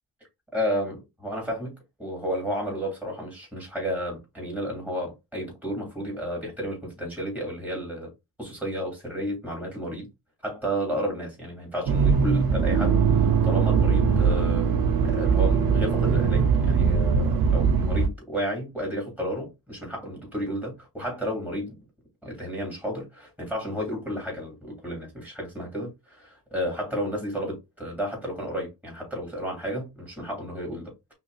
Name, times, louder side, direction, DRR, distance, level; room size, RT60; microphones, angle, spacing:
voice 1, 0.5-8.1 8.4-10.1 10.4-14.8 15.0-21.8 22.2-31.1, equal, 5° right, 2.8 m, -32 dB
Accelerating revving vroom, 11.9-18.1, right 6 dB, 75° right, 0.8 m, -21 dB
5.5 x 2.9 x 2.4 m
cardioid pair, 100°, 37 cm